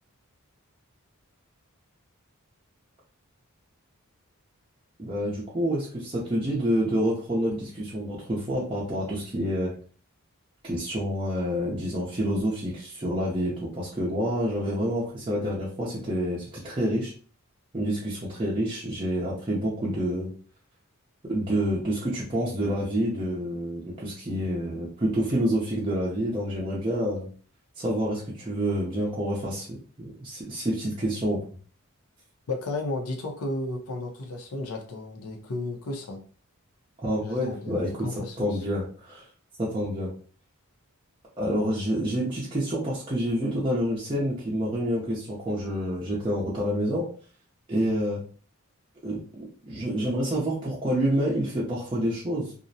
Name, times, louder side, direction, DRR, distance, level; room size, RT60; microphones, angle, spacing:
voice 1, 5.0-9.7 10.6-17.1 17.7-20.3 21.2-27.3 27.8-31.4 37.0-39.2 39.6-40.1 41.4-47.0 47.7-48.2 49.0-52.5, equal, 25° right, -6 dB, 0.5 m, -28 dB
voice 2, 32.5-36.2 37.2-38.6, left 2 dB, 80° left, 3 dB, 0.6 m, -33 dB
2.5 x 2.0 x 2.6 m, 0.41 s
head